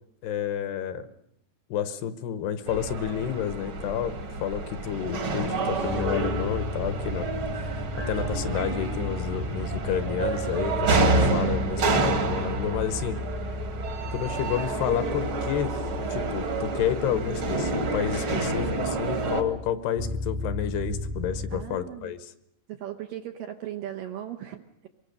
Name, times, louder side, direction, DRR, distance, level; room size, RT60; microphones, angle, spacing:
voice 1, 0.2-1.1 1.7-7.3 8.1-13.2 14.1-15.8 16.1-22.3, left 9 dB, 75° left, 11 dB, 2.9 m, -30 dB
sound 1, 2.7-19.4, right 3 dB, 45° right, 1.7 m, -28 dB
sound 2, 5.8-21.6, left 2 dB, 25° right, 0.9 m, -35 dB
voice 2, 21.5-22.1 22.7-24.9, right 11 dB, 75° right, 5 dB, 2.2 m, -37 dB
24.0 x 20.5 x 6.7 m, 0.75 s
omnidirectional pair, 5.0 m